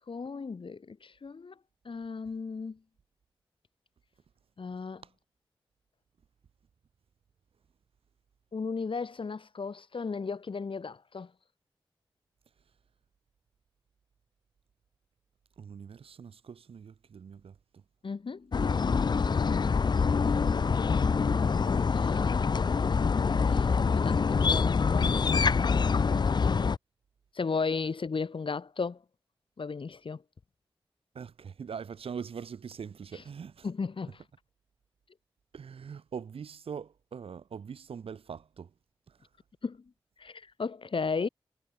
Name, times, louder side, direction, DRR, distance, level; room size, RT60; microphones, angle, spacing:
voice 1, 0.0-1.6 1.9-2.8 4.6-5.0 8.5-11.3 18.0-18.5 21.9-22.2 23.5-25.5 27.3-29.0 29.6-30.2 33.1-33.2 33.6-34.2 39.6-39.8 40.2-41.3, left 4 dB, 65° left, 3.6 m, -35 dB
voice 2, 15.6-17.6 26.1-26.2 31.1-33.7 35.5-38.7 39.1-39.2, right 6 dB, 90° right, 2.8 m, -43 dB
sound 1, 18.5-26.8, left 5 dB, 50° left, 0.5 m, -25 dB
cardioid pair, 45°, 10 cm